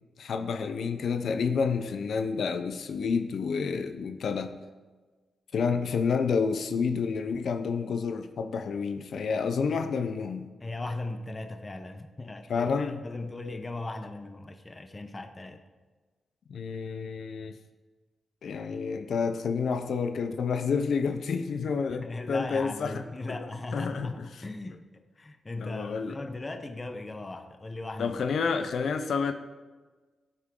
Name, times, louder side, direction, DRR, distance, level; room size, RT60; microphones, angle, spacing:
voice 1, 0.2-4.6 5.5-10.5 12.5-13.0 16.5-17.5 18.4-23.0 23.3-23.4 23.7-24.4 25.6-26.2 28.0-29.3, left 5 dB, 70° left, 7 dB, 0.7 m, -29 dB
voice 2, 10.6-15.6 21.9-28.2, left 2 dB, 20° left, 7 dB, 0.9 m, -38 dB
17.5 x 8.6 x 3.8 m, 1.3 s
wide cardioid pair, 135°, 0 cm